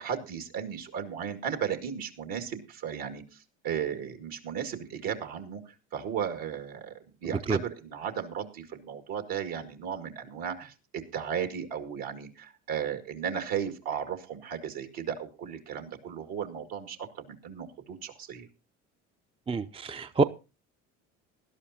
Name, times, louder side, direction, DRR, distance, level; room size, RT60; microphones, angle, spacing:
voice 1, 0.0-18.5, right 8 dB, 65° right, 2.2 m, -35 dB
voice 2, 19.5-20.2, right 3 dB, 15° right, 0.5 m, -26 dB
19.0 x 11.5 x 2.8 m
hypercardioid pair, 75°, 38 cm